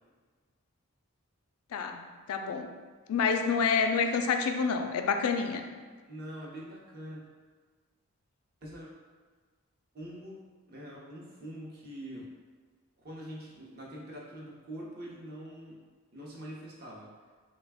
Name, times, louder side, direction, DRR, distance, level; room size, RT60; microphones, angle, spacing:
voice 1, 1.7-2.7 3.1-5.7, left 5 dB, 75° left, 6 dB, 0.3 m, -28 dB
voice 2, 6.1-7.2 8.6-8.9 9.9-12.3 13.0-15.8 16.1-17.1, equal, 45° right, -4 dB, 0.7 m, -44 dB
3.2 x 2.2 x 3.4 m, 1.5 s
head